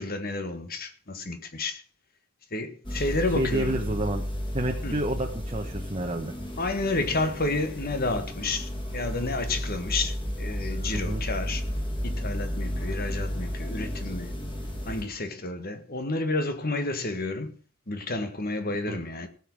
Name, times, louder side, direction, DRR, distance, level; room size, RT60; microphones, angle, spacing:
voice 1, 0.0-1.8 2.5-3.8 4.8-5.0 6.6-11.6 12.0-14.3 14.8-17.5 17.9-19.3, left 2 dB, 40° left, 1.6 m, -30 dB
sound 1, 2.8-15.0, equal, 20° left, 3.1 m, -33 dB
voice 2, 3.3-4.2 4.5-6.3 10.9-11.2 18.9-19.0, right 1 dB, 25° right, 1.2 m, -29 dB
17.0 x 7.3 x 6.2 m
head